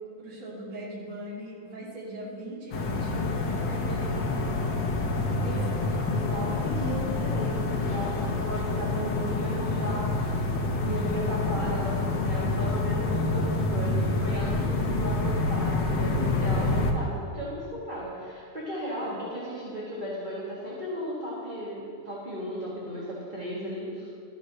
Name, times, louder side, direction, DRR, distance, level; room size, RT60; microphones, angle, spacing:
voice 1, 0.2-4.5 5.4-6.4 19.0-19.2, right 1 dB, 60° right, -8 dB, 4.5 m, -41 dB
sound 1, 2.7-16.9, left 2 dB, 55° left, 1.2 m, -27 dB
voice 2, 5.3-10.5 10.8-24.1, equal, 20° right, -8 dB, 2.0 m, -35 dB
13.5 x 13.5 x 3.2 m, 2.2 s
omnidirectional pair, 3.4 m